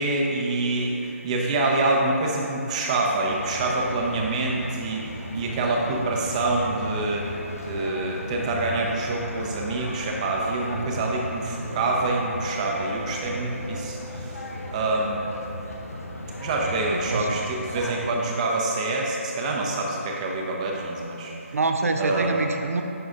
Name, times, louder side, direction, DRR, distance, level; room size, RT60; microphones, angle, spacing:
voice 1, 0.0-7.3 7.6-15.2 16.4-21.3 22.0-22.3, right 2 dB, 30° right, -1 dB, 0.7 m, -26 dB
sound 1, 3.2-18.1, left 1 dB, 75° left, 0.9 m, -36 dB
Musical instrument, 10.0-16.8, right 1 dB, 50° left, 1.3 m, -45 dB
voice 2, 16.9-17.4 21.5-22.8, right 3 dB, 75° right, 5 dB, 0.6 m, -25 dB
11.0 x 4.0 x 2.5 m, 2.9 s
figure-of-eight pair, 155°, 8 cm